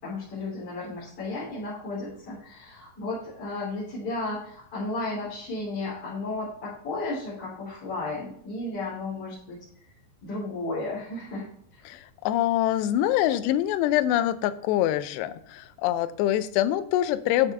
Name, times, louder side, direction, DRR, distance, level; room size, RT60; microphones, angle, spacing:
voice 1, 0.0-9.6 10.2-11.8, left 2 dB, 35° left, -10 dB, 4.0 m, -34 dB
voice 2, 11.9-17.5, left 13 dB, 80° left, 11 dB, 2.5 m, -25 dB
12.0 x 5.5 x 3.4 m, 0.65 s
omnidirectional pair, 5.2 m